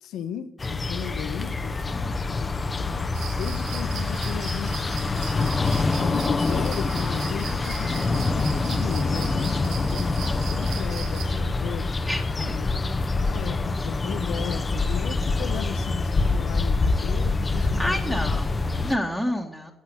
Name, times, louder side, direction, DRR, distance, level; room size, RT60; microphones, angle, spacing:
voice 1, 0.0-2.5 2.8-5.5 6.0-11.9 12.4-12.8 13.2-18.4, left 9 dB, 80° left, 0.9 m, -36 dB
sound 1, 0.6-19.0, left 3 dB, 30° left, 0.8 m, -26 dB
voice 2, 1.9-2.3 12.1-12.7 17.6-19.7, left 1 dB, ahead, 1.6 m, -30 dB
sound 2, 3.1-11.2, right 7 dB, 85° right, 1.6 m, -40 dB
11.0 x 7.5 x 9.0 m
cardioid pair, 90°, 0 cm